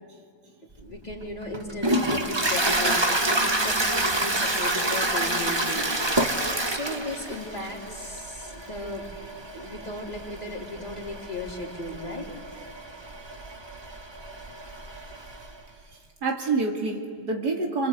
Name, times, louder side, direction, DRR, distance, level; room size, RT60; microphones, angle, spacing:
voice 1, 0.8-6.0 6.7-9.1 9.5-12.3, left 2 dB, 25° left, -2 dB, 3.6 m, -36 dB
Toilet flush, 0.8-15.5, right 1 dB, 20° right, 1.2 m, -28 dB
voice 2, 15.9-17.9, right 4 dB, 75° right, 1 dB, 2.8 m, -27 dB
27.0 x 25.5 x 8.2 m, 2.1 s
omnidirectional pair, 1.7 m